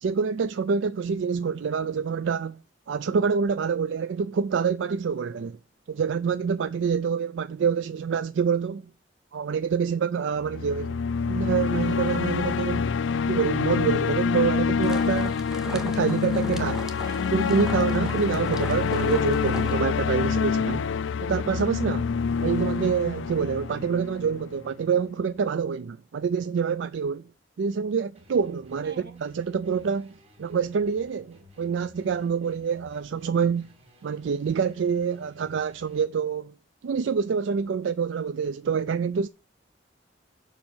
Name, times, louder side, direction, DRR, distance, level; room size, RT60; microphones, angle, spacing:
voice 1, 0.0-2.6 2.9-5.6 5.9-8.8 9.3-11.0 11.3-12.9 13.3-15.4 15.7-16.9 17.3-20.9 21.2-22.1 22.4-27.3 27.6-30.1 30.4-33.7 34.0-36.5 36.8-39.3, right 6 dB, 85° right, 0.4 m, -26 dB
sound 1, 10.4-24.6, left 6 dB, 90° left, 0.4 m, -26 dB
sound 2, 14.8-19.8, equal, 5° right, 1.0 m, -41 dB
voice 2, 16.9-17.4 28.8-29.2, right 3 dB, 55° right, 1.3 m, -46 dB
sound 3, 28.1-36.1, left 1 dB, 30° right, 2.4 m, -56 dB
7.3 x 5.3 x 7.1 m
head